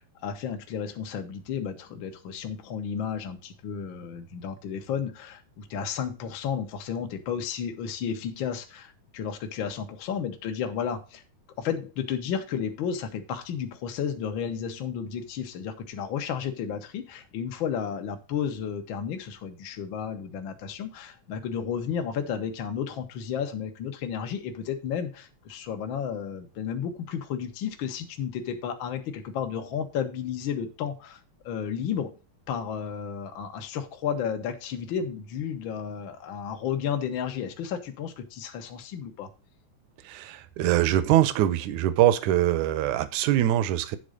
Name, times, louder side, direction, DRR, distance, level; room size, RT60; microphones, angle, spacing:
voice 1, 0.0-11.2 11.6-31.2 31.4-32.2 32.5-39.3, left 7 dB, 75° left, 5 dB, 1.1 m, -32 dB
voice 2, 40.1-44.0, right 12 dB, 75° right, 13 dB, 1.9 m, -23 dB
9.6 x 3.9 x 6.4 m, 0.32 s
omnidirectional pair, 3.9 m